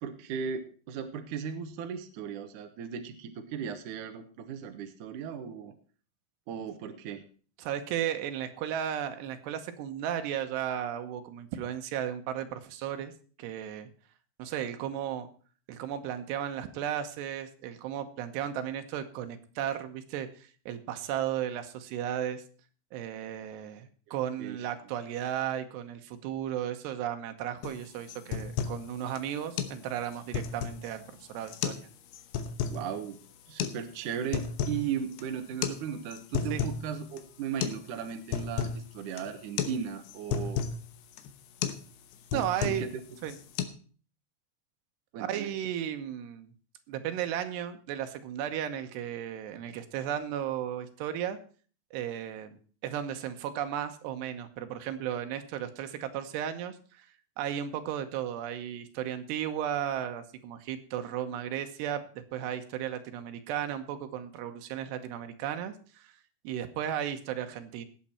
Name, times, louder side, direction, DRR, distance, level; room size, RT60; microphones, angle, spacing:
voice 1, 0.0-5.7 6.5-7.2 24.1-24.6 32.7-33.2 33.5-40.6 42.3-42.9 45.1-45.5, right 7 dB, 65° right, 7 dB, 2.2 m, -37 dB
voice 2, 7.6-13.1 13.4-13.9 14.4-15.3 15.7-22.4 22.9-31.9 36.5-36.6 42.3-42.8 43.2-43.4 45.2-46.5 46.9-51.4 51.9-52.5 52.8-57.1 57.4-62.0 62.3-66.1 66.4-67.9, right 10 dB, 85° right, 8 dB, 3.2 m, -35 dB
sound 1, 27.6-27.8 28.1-28.8 29.2-29.3 29.6-29.8 30.1-30.9 31.5-31.9 32.1-32.8 33.6-33.8 34.1-34.8 35.1-35.2 35.6-35.8 36.1-36.8 37.2-37.3 37.6-37.8 38.1-38.8 39.2-39.3 39.6-39.8 40.1-40.8 41.2-41.3 41.6-41.8 42.1-42.9 43.2-43.6, left 7 dB, 85° left, 3.1 m, -32 dB
19.0 x 7.4 x 4.3 m, 0.41 s
omnidirectional pair, 4.7 m